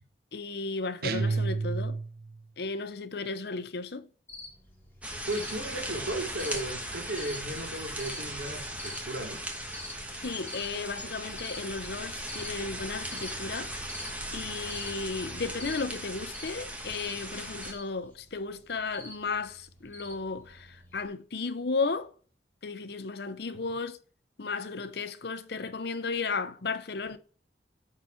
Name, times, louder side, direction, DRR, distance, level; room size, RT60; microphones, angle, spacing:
voice 1, 0.3-2.0 2.6-4.1 10.2-13.9 14.3-22.1 22.6-24.0 24.4-27.2, left 4 dB, 60° left, 0.7 m, -34 dB
sound 1, 1.0-2.4, right 4 dB, 55° right, 0.5 m, -30 dB
Cricket, 4.3-21.1, left 2 dB, 10° left, 2.2 m, -48 dB
sound 2, 5.0-17.7, right 1 dB, 5° right, 1.2 m, -38 dB
voice 2, 5.3-9.4, right 1 dB, 70° right, 3.0 m, -35 dB
10.0 x 4.4 x 4.7 m
head